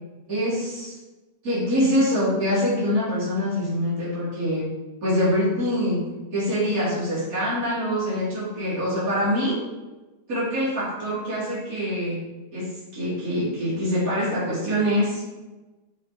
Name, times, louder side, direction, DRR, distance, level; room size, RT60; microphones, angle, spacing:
voice 1, 0.3-1.0 1.4-4.7 5.0-6.0 6.3-9.6 10.3-12.2 12.5-15.2, equal, 55° right, -10 dB, 3.5 m, -24 dB
6.1 x 5.7 x 4.9 m, 1.1 s
omnidirectional pair, 1.8 m